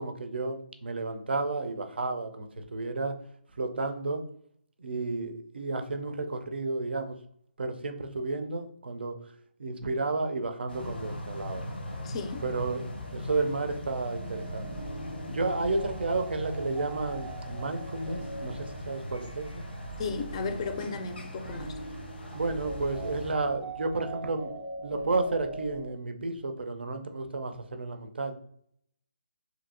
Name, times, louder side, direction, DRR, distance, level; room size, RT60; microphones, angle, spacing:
voice 1, 0.0-3.2 3.6-4.2 4.8-7.1 7.6-9.3 9.6-11.6 12.4-12.8 13.1-14.7 15.3-19.6 22.3-24.5 24.8-28.4, right 3 dB, 70° right, 0.4 m, -32 dB
sound 1, 10.7-23.3, left 1 dB, 80° left, 0.7 m, -40 dB
voice 2, 12.0-12.4 20.0-21.8, left 5 dB, 30° left, 0.3 m, -34 dB
sound 2, 14.1-25.9, right 2 dB, 15° right, 0.7 m, -42 dB
2.7 x 2.6 x 2.6 m
figure-of-eight pair, 150°, 6 cm